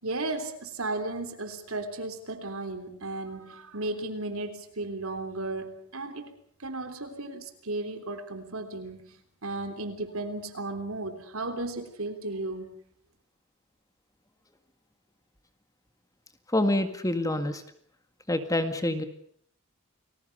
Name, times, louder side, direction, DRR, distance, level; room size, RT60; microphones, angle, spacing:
voice 1, 0.0-6.3 6.6-9.2 9.4-12.8, right 2 dB, 70° right, 7 dB, 3.4 m, -35 dB
voice 2, 16.5-17.6 18.3-19.0, left 1 dB, 15° left, 8 dB, 1.9 m, -26 dB
30.0 x 21.0 x 6.8 m, 0.62 s
head